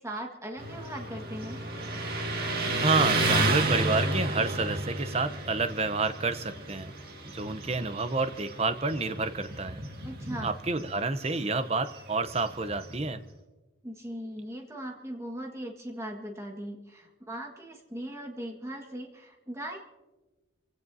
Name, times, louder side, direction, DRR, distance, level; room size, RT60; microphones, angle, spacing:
voice 1, 0.0-1.6 10.0-10.5 13.8-19.8, right 1 dB, 15° right, 1 dB, 1.7 m, -39 dB
Motorcycle, 0.6-13.2, right 2 dB, 50° right, 1.9 m, -32 dB
voice 2, 2.8-6.9 7.2-9.8 10.4-13.2, right 3 dB, 30° right, 11 dB, 0.7 m, -29 dB
27.5 x 16.5 x 2.7 m, 1.2 s
head